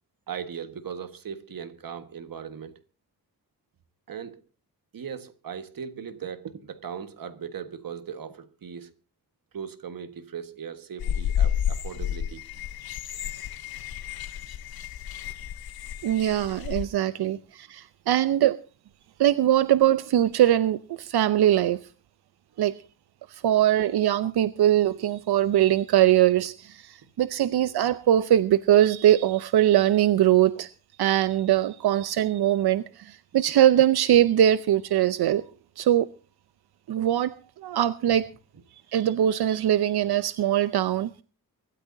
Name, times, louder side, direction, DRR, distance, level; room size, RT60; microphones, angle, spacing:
voice 1, 0.3-2.8 4.1-4.4 4.9-8.9 9.5-12.6, right 7 dB, 65° right, 1.5 m, -38 dB
sound 1, 11.0-16.8, left 9 dB, 75° left, 0.8 m, -31 dB
voice 2, 16.0-18.6 19.2-21.9 22.6-22.8 23.3-30.7 31.0-35.4 35.8-36.1 36.9-37.3 37.6-38.3 38.9-41.2, right 12 dB, 90° right, 0.6 m, -22 dB
24.0 x 13.5 x 2.7 m
wide cardioid pair, 170°, 37 cm